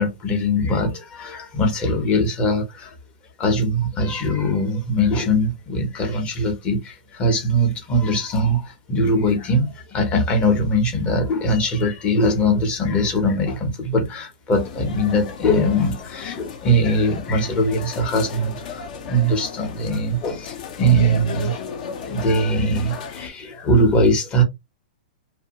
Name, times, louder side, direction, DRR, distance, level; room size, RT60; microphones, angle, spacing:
voice 1, 0.0-2.9 3.4-21.6 22.0-24.4, equal, 20° left, 0.8 m, -21 dB
sound 1, 14.5-23.3, left 6 dB, 55° left, 0.7 m, -35 dB
2.6 x 2.1 x 2.9 m
hypercardioid pair, 150°, 5 cm